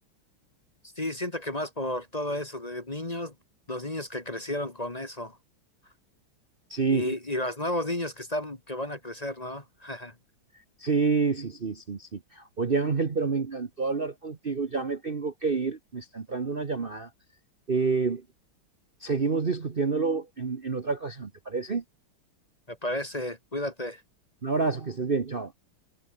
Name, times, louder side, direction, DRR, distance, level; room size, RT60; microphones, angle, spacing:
voice 1, 1.0-3.3 3.7-5.4 6.9-10.1 22.7-24.0, left 1 dB, 20° left, 1.7 m, -32 dB
voice 2, 6.7-7.1 10.8-17.1 17.7-18.2 19.0-21.8 24.4-25.5, right 4 dB, 35° right, 1.2 m, -28 dB
omnidirectional pair, 2.1 m